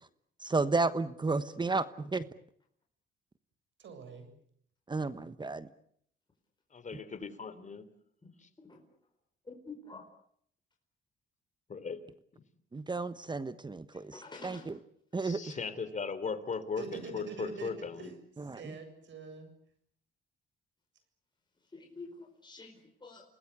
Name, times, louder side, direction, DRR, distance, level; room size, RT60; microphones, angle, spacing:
voice 1, 0.4-2.2 4.9-5.7 12.7-14.8 15.1-15.6 18.5-18.6, right 3 dB, 20° right, 13 dB, 1.2 m, -32 dB
voice 2, 3.8-4.3 16.8-18.1 18.4-19.5, right 4 dB, 70° right, 9 dB, 7.6 m, -44 dB
voice 3, 6.7-7.8 8.4-8.5 11.7-12.0 12.3-12.4 15.2-18.1, left 5 dB, 40° left, 12 dB, 3.5 m, -38 dB
voice 4, 9.5-10.0 14.1-14.7 21.7-23.2, left 3 dB, 20° left, 2 dB, 4.8 m, -48 dB
29.5 x 19.5 x 8.3 m, 0.66 s
cardioid pair, 90°, 20 cm